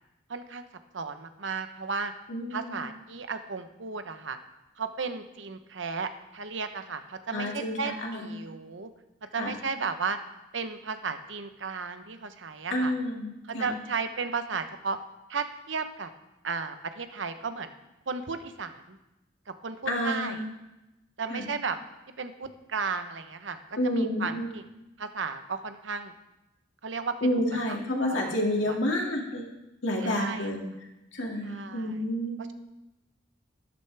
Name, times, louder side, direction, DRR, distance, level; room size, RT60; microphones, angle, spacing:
voice 1, 0.3-0.7 0.9-2.1 2.5-4.4 4.8-8.9 9.3-10.2 10.5-12.9 13.5-15.0 15.3-16.1 16.4-17.7 18.1-19.0 19.6-20.4 21.2-21.8 22.2-24.6 25.0-26.1 26.8-27.3 27.7-27.8 28.1-28.8 30.0-30.5 31.4-32.0 32.4-32.5, right 5 dB, 80° right, 9 dB, 0.9 m, -34 dB
voice 2, 2.3-2.8 7.3-8.3 9.4-9.5 12.7-13.7 19.9-20.4 21.3-21.4 23.8-24.5 27.2-29.4 29.8-30.6 31.1-32.4, left 1 dB, 80° left, 0 dB, 2.2 m, -29 dB
12.5 x 12.0 x 3.4 m, 0.97 s
head